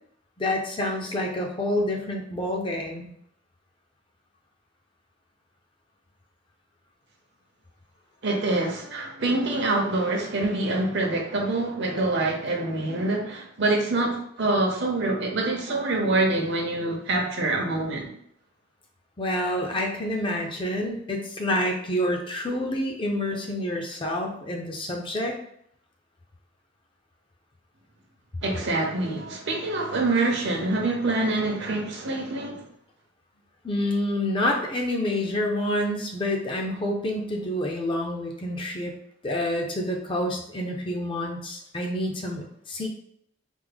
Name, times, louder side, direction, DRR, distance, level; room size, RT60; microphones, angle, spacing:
voice 1, 0.4-3.1 19.2-25.4 33.6-38.9 39.2-42.9, left 1 dB, 25° left, 0.5 m, -28 dB
voice 2, 8.2-18.1 28.4-32.7, right 2 dB, 60° right, 0.7 m, -25 dB
3.4 x 2.0 x 3.3 m
head